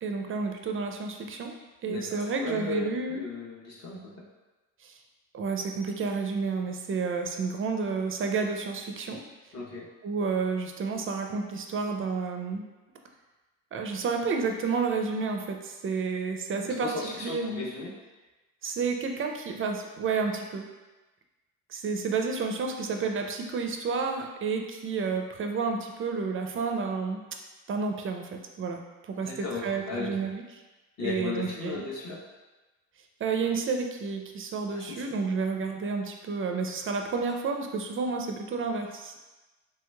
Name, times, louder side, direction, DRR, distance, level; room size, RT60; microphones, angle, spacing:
voice 1, 0.0-1.5 1.8-3.2 4.8-4.9 5.3-9.2 10.0-12.6 13.7-16.9 17.2-17.7 18.6-20.7 21.7-27.2 27.7-29.3 29.6-30.4 31.0-31.9 33.2-39.2, right 4 dB, 35° right, 4 dB, 0.4 m, -30 dB
voice 2, 2.4-4.0 9.5-9.8 16.6-17.9 29.2-30.3 31.0-32.2 34.7-35.2, left 3 dB, 45° left, -4 dB, 0.9 m, -36 dB
3.1 x 3.0 x 2.2 m, 1.2 s
supercardioid pair, 75°, 37 cm